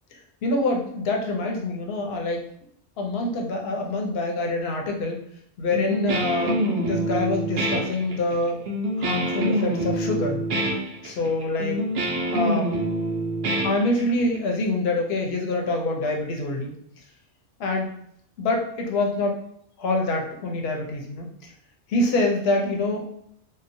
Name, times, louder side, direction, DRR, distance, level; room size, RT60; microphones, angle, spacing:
voice 1, 0.1-2.4 3.0-5.2 5.6-8.6 9.0-10.4 11.0-11.8 12.3-12.7 13.6-16.7 17.6-17.9 18.4-19.4 19.8-21.5 21.9-23.1, left 2 dB, 65° left, 1 dB, 0.8 m, -25 dB
Guitar, 5.7-14.4, right 1 dB, 65° right, 0.7 m, -26 dB
2.8 x 2.1 x 2.5 m, 0.70 s
omnidirectional pair, 1.2 m